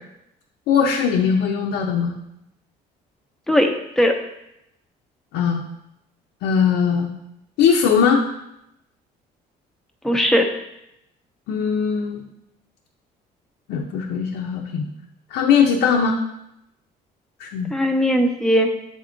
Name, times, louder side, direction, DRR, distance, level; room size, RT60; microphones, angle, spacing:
voice 1, 0.7-2.1 5.3-5.6 6.4-7.1 7.6-8.2 11.5-12.2 13.7-14.8 15.3-16.2 17.4-17.7, left 6 dB, 85° left, 0 dB, 0.6 m, -20 dB
voice 2, 3.5-4.1 10.0-10.5 17.7-18.7, equal, ahead, 3 dB, 0.7 m, -18 dB
7.6 x 3.5 x 3.8 m, 0.84 s
cardioid pair, 110°, 17 cm